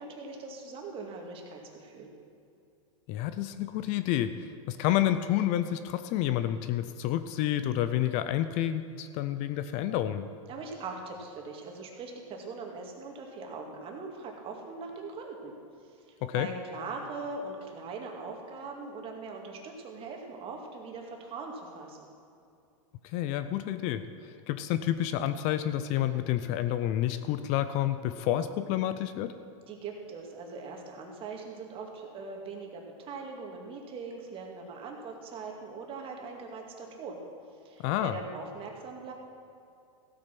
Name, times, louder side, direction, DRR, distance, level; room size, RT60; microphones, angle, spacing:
voice 1, 0.0-2.1 10.5-15.5 15.8-22.0 29.7-37.2 37.6-39.1, right 4 dB, 30° right, 1 dB, 2.3 m, -41 dB
voice 2, 3.1-10.3 16.2-16.5 23.1-24.0 24.5-29.3 37.8-38.2, left 12 dB, 45° left, 12 dB, 0.6 m, -29 dB
15.0 x 8.8 x 6.0 m, 2.5 s
supercardioid pair, 130°, 17 cm